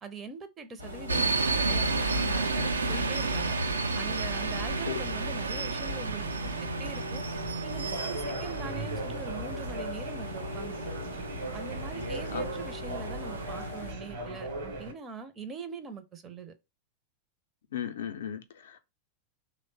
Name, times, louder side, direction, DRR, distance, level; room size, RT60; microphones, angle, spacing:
voice 1, 0.0-3.6 3.9-7.2 7.6-10.8 11.5-16.5, right 4 dB, 25° right, 0.5 m, -42 dB
sound 1, 0.8-13.9, left 1 dB, 90° right, 0.9 m, -41 dB
sound 2, 1.1-13.7, right 3 dB, 75° right, 0.4 m, -32 dB
sound 3, 3.2-14.9, right 2 dB, 55° right, 1.0 m, -40 dB
voice 2, 17.7-18.8, left 9 dB, 60° left, 0.4 m, -36 dB
3.1 x 2.0 x 3.9 m
figure-of-eight pair, 90°, 0 cm